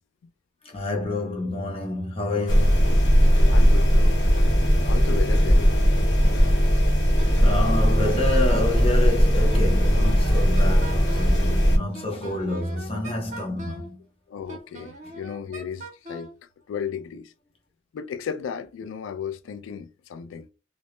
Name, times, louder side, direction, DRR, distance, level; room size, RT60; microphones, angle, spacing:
voice 1, 0.6-3.1 5.5-5.6 6.8-14.0, left 2 dB, 30° left, 0.7 m, -29 dB
sound 1, 2.5-11.8, equal, 60° left, 0.9 m, -18 dB
voice 2, 3.5-4.2 4.8-5.7 14.3-16.3 16.7-17.3 17.9-20.5, left 7 dB, 85° left, 0.3 m, -34 dB
Wind instrument woodwind instrument, 7.2-9.0 9.5-11.4 11.9-13.9 14.5-16.3, right 1 dB, 40° right, 0.5 m, -41 dB
2.1 x 2.0 x 3.0 m
head